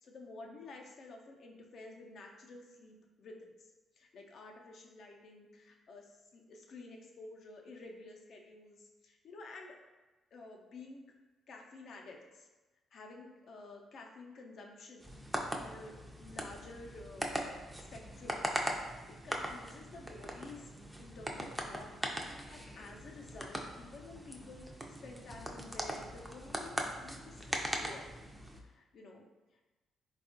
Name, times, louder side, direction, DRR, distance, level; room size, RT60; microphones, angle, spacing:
voice 1, 0.0-3.7 4.0-9.8 10.3-11.0 11.5-12.5 12.9-17.4 17.8-20.7 21.0-28.1 28.5-29.2, left 2 dB, 60° left, 1 dB, 0.5 m, -51 dB
sound 1, 15.0-28.6, right 1 dB, 10° right, 0.3 m, -40 dB
3.5 x 2.3 x 2.5 m, 1.2 s
cardioid pair, 90°, 0 cm